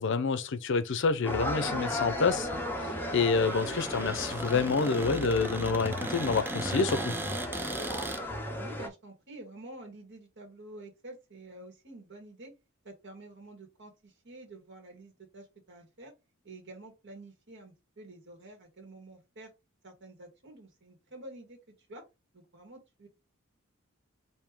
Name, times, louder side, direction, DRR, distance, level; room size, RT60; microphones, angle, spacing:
voice 1, 0.0-2.4 2.8-7.1, left 4 dB, 60° left, 0.5 m, -28 dB
sound 1, 1.2-8.9, left 1 dB, 10° left, 0.8 m, -35 dB
Cupboard open or close, 1.5-8.2, right 2 dB, 10° right, 0.4 m, -38 dB
voice 2, 8.6-12.5 12.8-16.1 16.4-19.5 19.8-21.6 21.9-22.0 22.3-23.1, right 2 dB, 60° right, 1.6 m, -49 dB
3.6 x 2.7 x 4.7 m
head